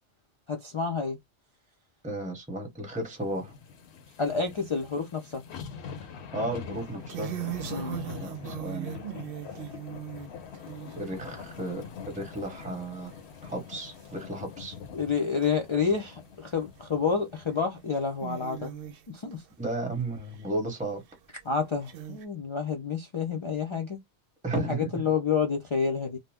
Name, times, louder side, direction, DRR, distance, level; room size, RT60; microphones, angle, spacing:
voice 1, 0.5-1.2 4.2-5.4 7.7-8.0 14.9-18.7 19.1-19.4 21.5-24.0 24.5-26.2, left 5 dB, 45° left, 0.4 m, -29 dB
voice 2, 2.0-3.5 6.3-7.4 8.2-8.9 11.0-13.1 13.4-14.7 19.6-21.0 24.4-25.0, right 2 dB, 10° right, 0.8 m, -34 dB
sound 1, 3.2-17.7 18.1-18.2, left 6 dB, 75° left, 0.9 m, -44 dB
sound 2, 6.8-11.9 12.3-12.7 13.2-13.3 13.5-13.6 14.0-14.1 15.4-15.5 16.5-16.8 17.3-17.4 17.8-19.4 19.9-20.4 21.1-21.2 21.9-22.2, right 11 dB, 65° right, 0.7 m, -39 dB
2.7 x 2.0 x 3.3 m
omnidirectional pair, 1.1 m